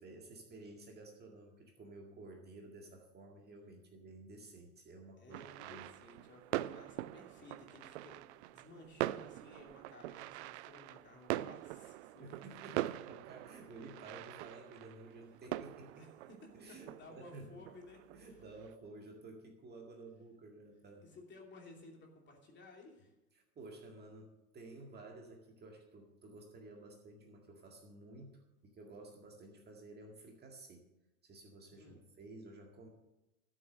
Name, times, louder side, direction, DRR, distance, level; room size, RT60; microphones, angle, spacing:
voice 1, 0.0-5.9 12.2-16.1 16.5-17.7 18.1-21.1 23.3-30.9 31.2-32.9, right 2 dB, 20° right, 1 dB, 1.9 m, -53 dB
voice 2, 5.2-12.5 16.0-18.0 21.0-23.1 31.7-32.0, left 2 dB, 25° left, 1 dB, 2.8 m, -57 dB
sound 1, 5.3-18.7, right 16 dB, 50° right, 0.5 m, -43 dB
13.0 x 7.5 x 6.5 m, 0.95 s
hypercardioid pair, 105°, 45 cm